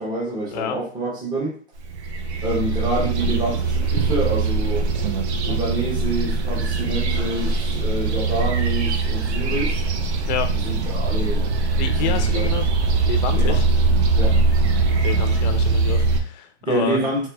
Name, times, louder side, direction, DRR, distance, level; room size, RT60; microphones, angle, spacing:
voice 1, 0.0-1.6 2.4-4.9 5.4-9.8 10.5-11.5 11.8-12.5 13.3-13.7 14.1-14.4 16.6-17.3, right 2 dB, 10° right, -5 dB, 0.9 m, -27 dB
sound 1, 1.9-16.2, right 3 dB, 70° right, 0.6 m, -21 dB
voice 2, 11.8-12.7 13.0-13.6 15.0-17.0, left 8 dB, 40° left, 8 dB, 0.4 m, -28 dB
3.1 x 3.0 x 2.2 m, 0.41 s
hypercardioid pair, 140°, 34 cm